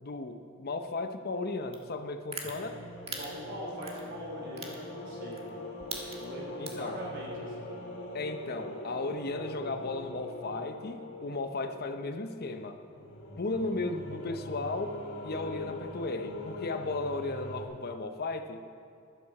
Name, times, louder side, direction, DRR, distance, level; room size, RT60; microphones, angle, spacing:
voice 1, 0.0-2.8 6.6-7.0 8.1-12.8 13.4-14.9 15.2-18.6, left 3 dB, 50° left, 7 dB, 0.8 m, -35 dB
sound 1, 1.7-1.8 2.3-2.5 3.1-3.2 3.8-4.0 4.6-4.7 5.3-5.5 5.8-6.2 6.7-6.9, right 5 dB, 30° right, 1.6 m, -37 dB
sound 2, 2.4-17.6, left 1 dB, 70° left, 2.7 m, -42 dB
voice 2, 3.0-5.4 6.2-7.7, equal, 60° right, -2 dB, 3.7 m, -42 dB
13.0 x 12.0 x 4.8 m, 2.5 s
head